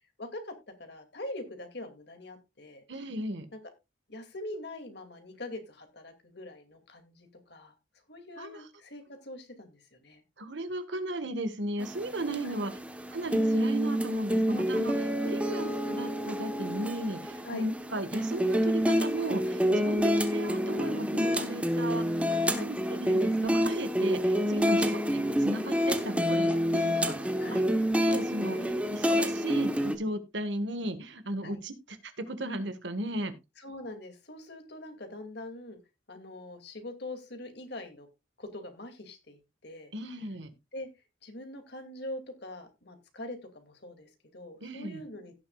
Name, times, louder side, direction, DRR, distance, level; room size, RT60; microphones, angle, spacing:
voice 1, 0.2-2.8 3.5-3.6 4.1-7.7 8.1-10.2 12.4-12.6 15.1-15.4 17.4-17.6 22.5-22.7 24.7-24.9 27.4-27.7 28.5-28.8 31.4-31.6 33.6-35.8 36.1-38.1 38.4-39.9 40.7-40.9 41.2-45.3, left 1 dB, 60° left, 2.5 m, -43 dB
voice 2, 2.9-3.5 8.4-8.6 10.4-12.8 13.1-22.3 22.6-27.6 27.9-33.3 39.9-40.5 44.6-45.0, right 1 dB, 70° right, 1.6 m, -35 dB
sound 1, 11.8-30.0, equal, 5° right, 1.1 m, -28 dB
17.0 x 7.5 x 2.4 m
head